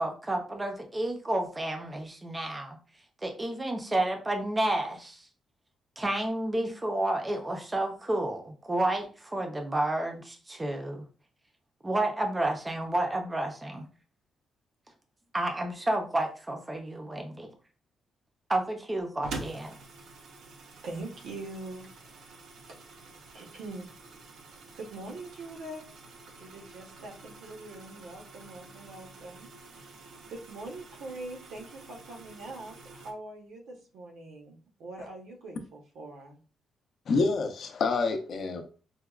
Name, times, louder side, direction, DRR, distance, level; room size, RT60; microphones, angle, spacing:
voice 1, 0.0-2.8 3.2-5.2 6.0-11.0 11.8-13.9 15.3-17.5 18.5-19.8, right 1 dB, 15° right, 0.5 m, -30 dB
sound 1, 19.2-33.1, right 3 dB, 65° right, 0.6 m, -47 dB
voice 2, 20.8-22.2 23.3-23.9 24.7-26.0 26.4-30.0 30.3-36.4, right 2 dB, 85° right, 0.9 m, -43 dB
voice 3, 37.1-38.6, left 4 dB, 50° left, 0.5 m, -27 dB
4.5 x 2.2 x 2.3 m
cardioid pair, 170°, 0 cm